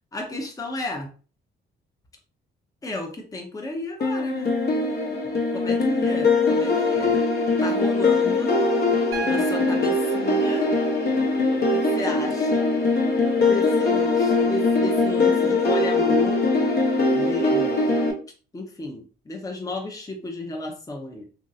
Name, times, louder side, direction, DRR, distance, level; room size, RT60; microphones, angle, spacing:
voice 1, 0.1-1.1 2.8-4.5 5.5-7.2 7.6-8.6 9.2-10.7 11.9-12.7 13.4-16.5 17.1-17.8 18.5-21.3, left 2 dB, 15° left, 2 dB, 0.7 m, -32 dB
sound 1, 4.0-18.1, left 3 dB, 55° left, 0.9 m, -21 dB
Piano, 9.1-13.1 14.7-14.8, right 2 dB, 80° right, 0.8 m, -39 dB
3.0 x 2.6 x 2.6 m, 0.37 s
cardioid pair, 90°, 20 cm